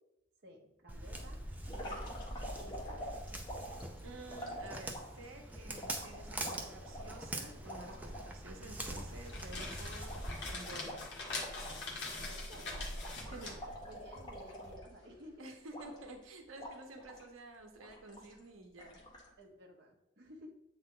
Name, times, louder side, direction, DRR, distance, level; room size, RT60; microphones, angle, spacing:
voice 1, 0.4-2.2 2.5-3.1 12.1-12.9 13.3-15.5 19.4-20.5, equal, 50° right, 0 dB, 0.9 m, -55 dB
Walk footsteps, 0.9-10.5, right 1 dB, 10° right, 0.5 m, -44 dB
sound 1, 1.7-5.2 5.8-8.3 8.6-8.7 9.0-11.9 12.2-12.4 12.7-15.2 15.7-16.2 16.6-17.3 17.8-18.4 18.8-19.3, equal, 20° left, 1.2 m, -47 dB
voice 2, 4.0-11.0 13.2-13.5 15.4-19.0, right 2 dB, 85° right, 4 dB, 0.9 m, -51 dB
sound 2, 9.1-14.7, left 2 dB, 60° left, 1.5 m, -43 dB
7.8 x 4.1 x 3.8 m, 0.95 s
head